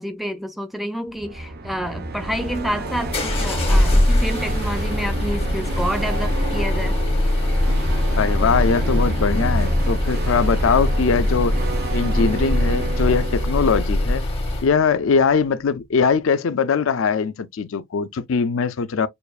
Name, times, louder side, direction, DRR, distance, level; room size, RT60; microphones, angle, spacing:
voice 1, 0.0-6.9, equal, ahead, 0.8 m, -28 dB
sound 1, 1.1-15.1, right 2 dB, 50° right, 0.6 m, -30 dB
sound 2, 2.2-14.7, left 1 dB, 30° left, 1.7 m, -22 dB
sound 3, 2.5-9.3, right 2 dB, 70° right, 2.8 m, -37 dB
voice 2, 8.2-11.6 11.9-14.2 14.6-19.1, left 5 dB, 70° left, 0.4 m, -21 dB
6.8 x 2.5 x 2.3 m
head